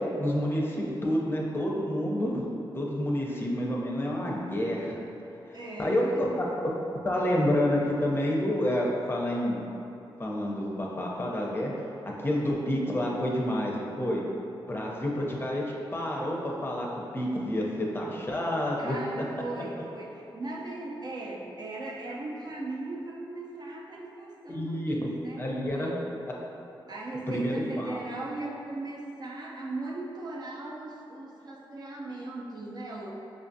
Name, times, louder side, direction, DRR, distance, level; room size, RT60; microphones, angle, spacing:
voice 1, 0.0-2.5 2.7-5.0 5.5-6.4 7.0-9.6 10.2-11.7 12.2-14.2 14.7-15.6 15.9-16.9 17.1-19.0 24.5-25.0 25.4-26.0 27.3-28.0, left 1 dB, 25° left, -3 dB, 0.6 m, -29 dB
voice 2, 5.5-6.4 18.8-26.0 26.9-33.1, right 2 dB, 50° right, -3 dB, 0.6 m, -38 dB
5.0 x 2.4 x 2.6 m, 2.8 s
cardioid pair, 70°, 9 cm